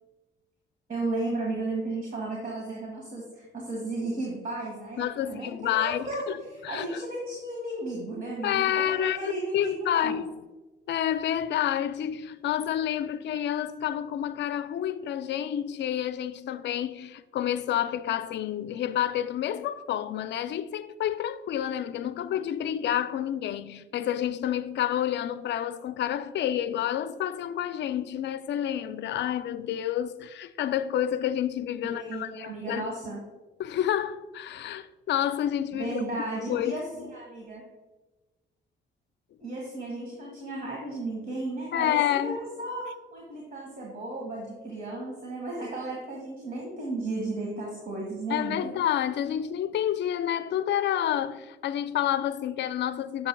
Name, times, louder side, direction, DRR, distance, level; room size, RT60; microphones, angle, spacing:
voice 1, 0.9-10.2 31.8-33.2 35.7-37.6 39.4-42.0 42.2-42.9 43.1-48.7, right 2 dB, 45° right, 1.7 m, -34 dB
voice 2, 5.0-7.0 8.4-10.4 10.9-32.9 33.6-36.0 36.5-36.8 41.7-42.4 48.3-53.3, left 10 dB, 65° left, 0.4 m, -29 dB
7.6 x 7.0 x 2.2 m
cardioid pair, 90°, 20 cm